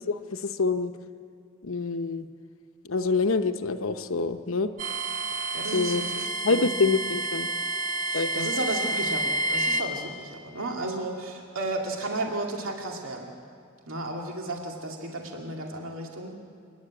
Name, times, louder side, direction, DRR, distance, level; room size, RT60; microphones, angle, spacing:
voice 1, 0.1-0.9 1.6-2.3 2.9-4.7 5.7-6.0 6.4-7.5 8.1-8.5, left 4 dB, 80° left, 9 dB, 0.9 m, -26 dB
sound 1, 4.8-9.8, right 2 dB, 35° right, 0.9 m, -29 dB
voice 2, 5.5-6.7 8.0-13.3 13.9-16.3, right 2 dB, 80° right, 1 dB, 2.4 m, -33 dB
28.5 x 10.5 x 8.7 m, 2.3 s
head